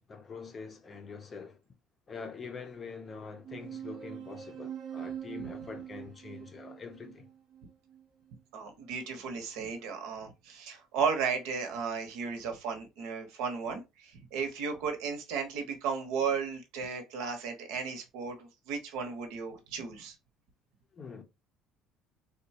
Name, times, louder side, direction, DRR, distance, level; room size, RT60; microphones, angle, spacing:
voice 1, 0.1-1.6 2.1-7.2 20.9-21.2, left 5 dB, 20° left, 0.5 m, -44 dB
sound 1, 3.4-8.4, right 9 dB, 45° right, 0.5 m, -43 dB
voice 2, 8.5-20.1, right 6 dB, 80° right, 0.9 m, -35 dB
3.9 x 2.2 x 2.7 m
cardioid pair, 175°, 0 cm